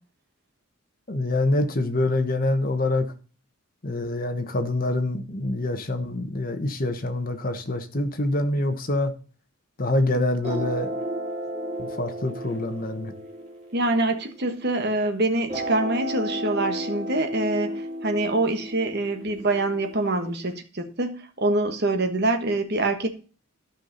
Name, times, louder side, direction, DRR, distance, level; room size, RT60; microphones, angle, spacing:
voice 1, 1.1-3.1 3.8-9.1 9.8-11.0 11.8-13.1, left 2 dB, 40° left, 1.2 m, -25 dB
sound 1, 10.4-14.8 15.5-20.4, equal, 30° right, 2.9 m, -33 dB
voice 2, 13.7-23.1, right 2 dB, 45° right, 1.3 m, -25 dB
12.5 x 5.8 x 4.1 m
head